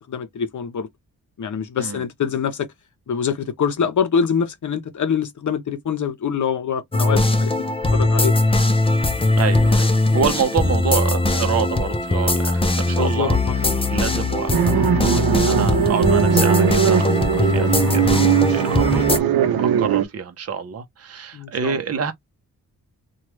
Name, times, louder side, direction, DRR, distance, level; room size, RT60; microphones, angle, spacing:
voice 1, 0.1-0.9 1.4-2.7 3.1-7.5 7.9-8.3 10.1-10.2 12.8-13.6 21.3-21.8, left 7 dB, 55° left, 0.8 m, -25 dB
sound 1, 6.9-19.2, left 2 dB, 15° left, 0.6 m, -20 dB
voice 2, 9.4-13.4 13.9-18.1 18.5-22.1, right 6 dB, 45° right, 0.7 m, -27 dB
sound 2, 14.5-20.1, right 9 dB, 85° right, 0.7 m, -19 dB
3.1 x 2.4 x 3.0 m
cardioid pair, 85°, 35 cm